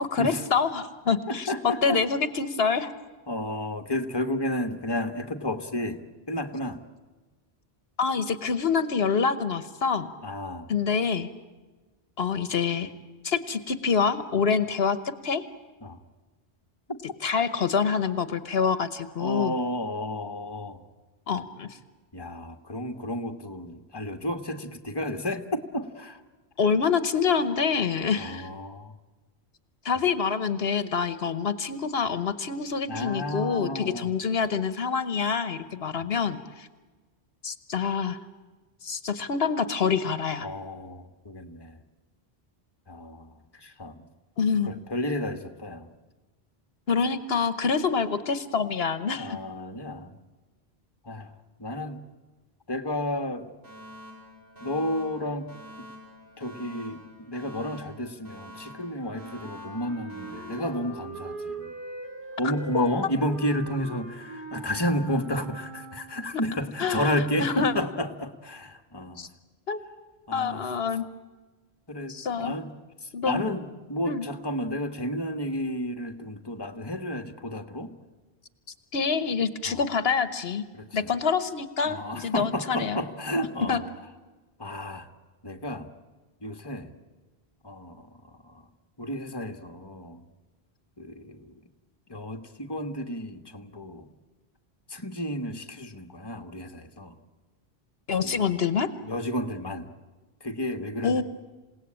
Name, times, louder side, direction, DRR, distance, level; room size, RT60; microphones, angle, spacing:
voice 1, 0.0-2.9 8.0-10.1 10.7-11.3 12.2-12.9 13.2-15.0 15.2-15.4 17.2-19.5 21.3-21.7 26.6-28.5 29.8-36.7 37.4-38.2 38.8-40.5 44.4-44.7 46.9-49.4 62.7-62.9 66.8-67.7 69.2-69.3 69.7-69.8 70.3-71.0 72.1-72.6 73.1-73.4 74.0-74.3 78.9-80.6 80.9-83.0 83.7-83.8 98.1-98.9 101.0-101.2, left 6 dB, 70° left, 13 dB, 1.3 m, -26 dB
voice 2, 1.3-2.0 3.3-6.0 6.3-6.8 10.2-10.7 15.8-16.0 19.2-20.8 22.1-26.2 28.2-28.9 32.9-34.1 40.4-41.8 42.9-44.0 44.7-45.9 49.1-50.1 51.0-51.3 51.6-52.0 52.7-53.5 54.6-55.5 56.4-61.7 62.4-69.3 70.3-70.7 71.9-72.7 73.3-77.9 79.7-79.8 80.7-81.0 81.8-83.8 84.6-85.1 85.4-85.9 86.4-86.9 87.6-88.1 88.4-88.6 89.0-90.2 91.0-91.5 92.1-94.1 94.9-97.1 98.2-98.6 99.0-99.9 100.4-101.2, left 1 dB, 25° left, 7 dB, 1.5 m, -32 dB
Alarm, 53.6-61.7, left 1 dB, 75° right, 8.4 m, -47 dB
Wind instrument woodwind instrument, 59.0-66.3, right 2 dB, 55° right, 4.9 m, -41 dB
28.0 x 17.5 x 8.8 m, 1.3 s
omnidirectional pair, 1.1 m